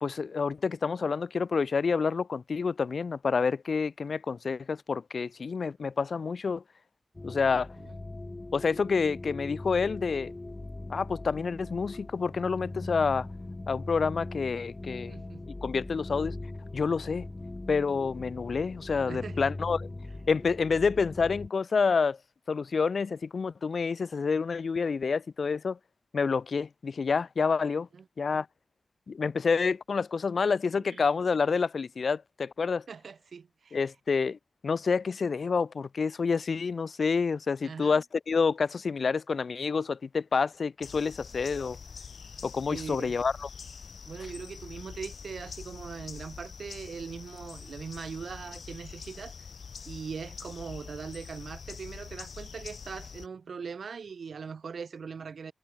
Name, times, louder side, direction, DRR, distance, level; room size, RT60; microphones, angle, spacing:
voice 1, 0.0-6.6 7.2-7.7 8.5-10.3 10.9-13.3 13.7-15.1 15.5-16.4 16.7-17.3 17.7-19.9 20.3-22.2 22.5-25.8 26.1-27.9 28.2-28.5 29.1-32.9 33.7-41.8 42.4-43.5, left 5 dB, 70° left, 0.3 m, -28 dB
sound 1, 7.1-21.5, left 2 dB, 25° left, 1.2 m, -40 dB
voice 2, 7.5-8.0 15.1-15.5 19.1-19.5 27.9-28.0 30.7-31.1 32.9-33.8 37.6-38.0 42.7-43.2 44.1-49.3 49.8-55.5, right 5 dB, 90° right, 5.6 m, -41 dB
sound 2, 40.8-53.3, left 6 dB, 90° left, 0.8 m, -45 dB
wide cardioid pair, 115°, 0 cm